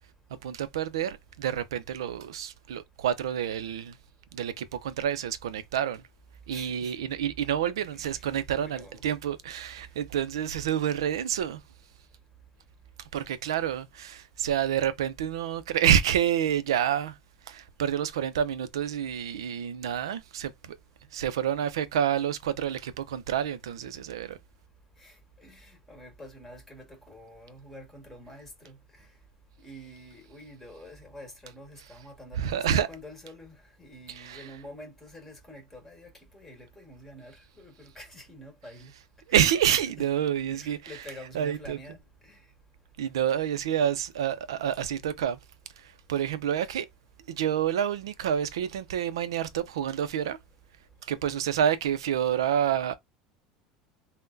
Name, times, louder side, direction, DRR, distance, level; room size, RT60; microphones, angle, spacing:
voice 1, 0.4-4.0 4.3-6.0 6.5-11.6 13.1-17.2 17.5-20.8 21.1-24.4 32.4-32.9 34.2-34.5 39.3-40.9 41.3-41.8 43.0-45.4 45.8-46.9 47.3-50.4 51.0-53.0, right 9 dB, 85° right, 0.4 m, -28 dB
voice 2, 6.5-7.1 7.9-8.2 8.6-9.0 13.1-13.3 25.0-29.1 29.6-38.9 39.3-39.8 40.5-42.4, left 1 dB, 10° left, 1.7 m, -48 dB
3.6 x 2.1 x 2.6 m
hypercardioid pair, 90°, 3 cm